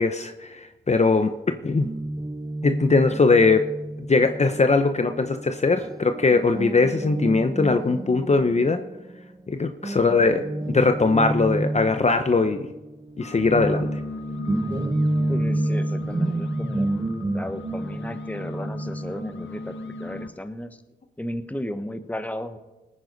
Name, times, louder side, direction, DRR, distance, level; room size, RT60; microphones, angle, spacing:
voice 1, 0.0-1.3 1.6-1.9 2.6-3.7 4.1-8.8 9.5-12.7 13.2-13.9, left 3 dB, 35° left, 8 dB, 0.8 m, -20 dB
Guitar, 1.8-9.5 9.8-20.3, right 1 dB, 20° right, 0.8 m, -30 dB
sound 1, 13.1-20.3, left 3 dB, 85° left, 0.8 m, -37 dB
voice 2, 15.3-16.9 17.3-20.8 21.2-22.6, left 1 dB, 10° left, 9 dB, 1.2 m, -34 dB
18.5 x 9.5 x 4.0 m, 1.1 s
cardioid pair, 60°, 19 cm